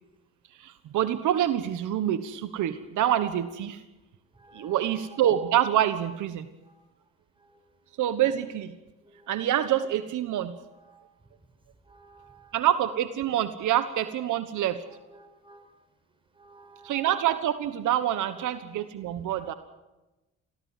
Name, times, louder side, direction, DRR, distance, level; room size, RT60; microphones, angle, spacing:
voice 1, 0.6-3.8 4.5-6.4 8.0-8.7 9.3-10.6 12.5-14.8 16.8-19.5, right 11 dB, 80° right, 11 dB, 1.3 m, -26 dB
voice 2, 4.3-5.2 6.6-6.9 7.4-7.5 9.0-9.5 10.7-11.0 11.8-12.6 14.9-15.7 16.3-17.1 18.3-18.5 19.4-19.6, right 2 dB, 15° right, 7 dB, 5.6 m, -54 dB
24.0 x 16.5 x 9.2 m, 1.0 s
cardioid pair, 90°, 30 cm